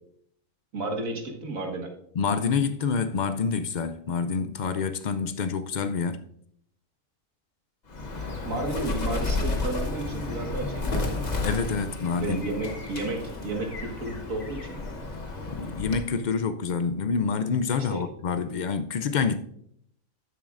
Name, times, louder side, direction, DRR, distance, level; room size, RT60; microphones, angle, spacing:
voice 1, 0.7-1.9 8.4-11.3 12.2-14.8 17.8-18.0, right 2 dB, 85° right, 1.9 m, -32 dB
voice 2, 2.1-6.2 11.4-12.4 15.5-19.4, left 5 dB, 80° left, 0.4 m, -27 dB
Bird, 7.9-16.2, left 3 dB, 35° left, 1.0 m, -32 dB
13.0 x 7.2 x 2.5 m
omnidirectional pair, 1.4 m